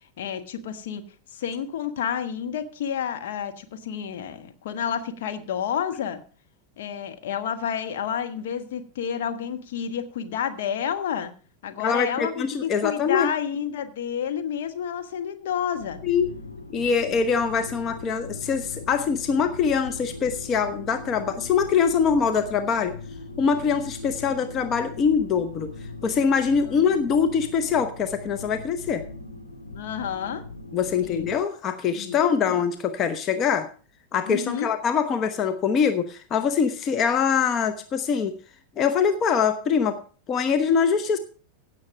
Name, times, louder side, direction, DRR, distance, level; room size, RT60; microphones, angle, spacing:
voice 1, 0.2-1.0 1.3-6.2 6.8-11.3 11.6-16.0 17.1-17.2 26.7-26.8 29.7-30.4 31.0-31.2 31.9-32.2 32.4-32.6 34.2-34.8, left 8 dB, 55° left, 7 dB, 1.3 m, -30 dB
voice 2, 11.8-13.3 16.0-16.3 16.7-22.9 23.4-25.7 26.0-29.0 30.7-33.7 34.1-38.3 38.8-40.0 40.3-41.2, left 6 dB, 30° left, 8 dB, 1.0 m, -23 dB
sound 1, 15.7-31.4, left 2 dB, 85° left, 1.7 m, -40 dB
16.5 x 6.8 x 4.7 m, 0.39 s
figure-of-eight pair, 90°, 0 cm